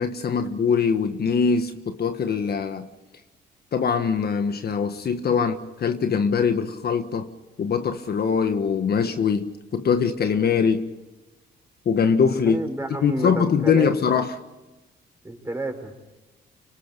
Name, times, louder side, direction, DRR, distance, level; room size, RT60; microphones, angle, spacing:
voice 1, 0.0-2.9 3.7-5.5 5.8-7.3 7.6-10.9 11.8-12.6 13.0-14.4, left 6 dB, 55° left, 1.5 m, -22 dB
voice 2, 12.5-13.9 15.2-15.9, right 1 dB, 15° right, 5.7 m, -30 dB
25.5 x 25.0 x 5.3 m
cardioid pair, 90°, 20 cm